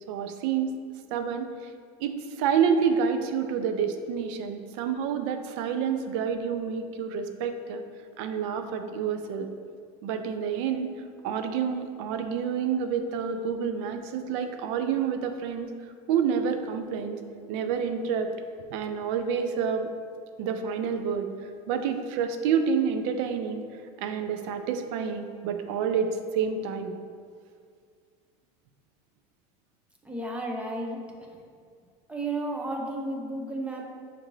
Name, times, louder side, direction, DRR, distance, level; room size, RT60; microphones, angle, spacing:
voice 1, 0.1-0.8 1.1-1.5 2.0-7.8 8.2-9.5 10.0-15.7 16.1-17.2 17.5-18.3 18.7-19.9 20.4-21.3 21.7-23.6 24.0-26.9, right 7 dB, 75° right, 7 dB, 0.4 m, -28 dB
voice 2, 30.0-31.0 31.3-31.4 32.1-33.8, right 2 dB, 10° right, 0 dB, 0.4 m, -33 dB
6.4 x 2.6 x 3.0 m, 2.2 s
cardioid pair, 160°, 15 cm